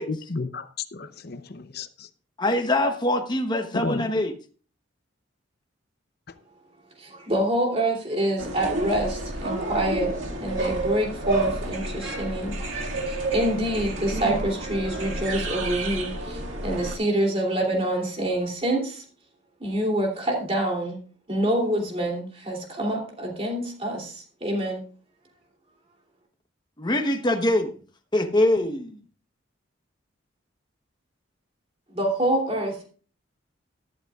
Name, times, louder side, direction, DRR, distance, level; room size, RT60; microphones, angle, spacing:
voice 1, 0.1-2.1 3.7-4.1, left 3 dB, 50° left, 11 dB, 0.8 m, -32 dB
voice 2, 2.4-4.3 26.8-27.8 28.1-28.9, left 1 dB, 20° left, 6 dB, 1.0 m, -23 dB
voice 3, 7.0-10.1 10.4-12.6 13.1-19.0 19.6-21.0 21.3-24.8 31.9-32.9, right 1 dB, 30° right, 0 dB, 2.9 m, -26 dB
sound 1, 8.4-16.9, right 2 dB, 75° right, 2.0 m, -30 dB
14.0 x 12.0 x 2.4 m, 0.39 s
head